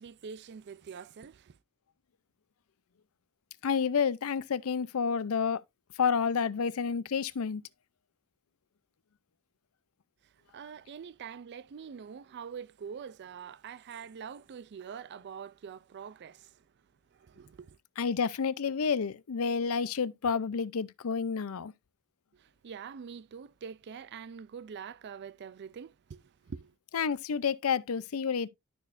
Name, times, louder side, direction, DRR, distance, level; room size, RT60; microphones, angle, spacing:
voice 1, 0.0-1.6 10.5-16.6 17.1-17.8 22.3-26.7, right 6 dB, 55° right, 0.4 m, -45 dB
voice 2, 3.6-5.6 6.0-7.6 18.0-21.7 26.9-28.5, left 6 dB, 85° left, 0.5 m, -29 dB
12.0 x 6.3 x 2.5 m
head